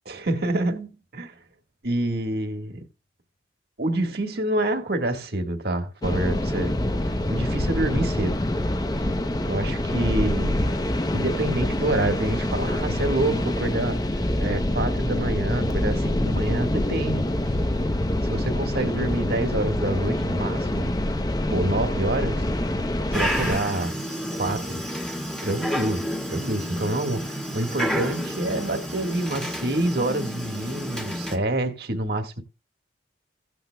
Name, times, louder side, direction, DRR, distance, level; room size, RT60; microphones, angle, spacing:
voice 1, 0.0-1.3 1.8-2.9 3.8-6.7 7.1-8.5 9.4-10.7 11.1-17.3 18.2-20.9 21.5-22.5 23.1-24.0 24.4-24.8 25.4-32.4, right 1 dB, 55° right, 1.6 m, -27 dB
sound 1, 6.0-23.6, left 1 dB, 20° left, 0.7 m, -25 dB
Dog, 23.1-31.4, equal, 5° left, 1.6 m, -30 dB
16.5 x 8.8 x 2.2 m
head